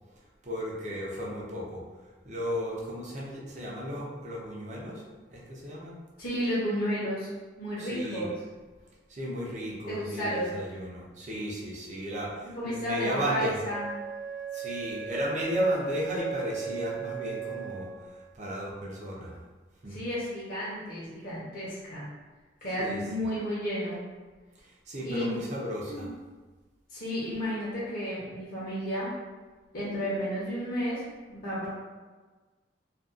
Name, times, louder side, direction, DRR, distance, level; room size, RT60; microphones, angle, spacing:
voice 1, 0.4-1.8 2.2-6.0 7.8-8.3 9.1-13.6 14.5-17.9 18.3-19.4 19.8-20.0 22.8-23.0 24.6-26.1, equal, 40° right, -4 dB, 0.5 m, -34 dB
voice 2, 6.2-7.3 7.6-8.3 9.9-10.5 12.5-13.9 19.9-22.1 22.6-24.0 25.0-25.4 25.9-26.1 26.9-29.1 29.7-31.7, equal, 50° left, -8 dB, 0.8 m, -32 dB
Wind instrument woodwind instrument, 13.7-18.3, right 8 dB, 10° left, 0.4 m, -37 dB
2.5 x 2.3 x 2.4 m, 1.3 s
head